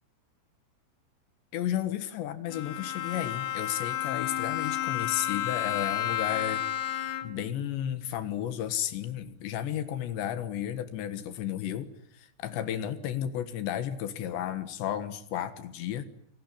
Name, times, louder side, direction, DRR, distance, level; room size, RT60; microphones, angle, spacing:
voice 1, 1.5-6.6 6.9-16.0, left 10 dB, 70° left, 12 dB, 3.5 m, -33 dB
Bowed string instrument, 2.5-7.6, left 11 dB, 85° left, 4.1 m, -31 dB
27.5 x 18.5 x 9.9 m, 0.68 s
omnidirectional pair, 5.7 m